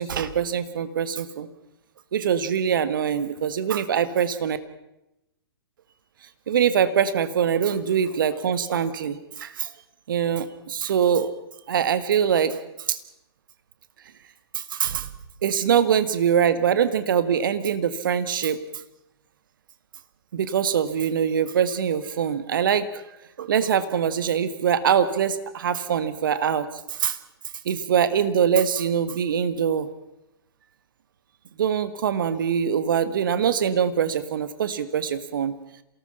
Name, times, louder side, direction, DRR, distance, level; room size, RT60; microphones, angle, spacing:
voice 1, 0.0-1.5 2.1-4.6 6.5-9.7 10.1-11.3 11.7-12.5 12.9-13.0 14.5-15.1 15.4-18.6 20.3-23.0 23.4-27.2 27.6-29.9 31.6-35.5, right 8 dB, 55° right, 12 dB, 1.6 m, -23 dB
27.5 x 18.0 x 5.7 m, 0.89 s
figure-of-eight pair, 115°, 13 cm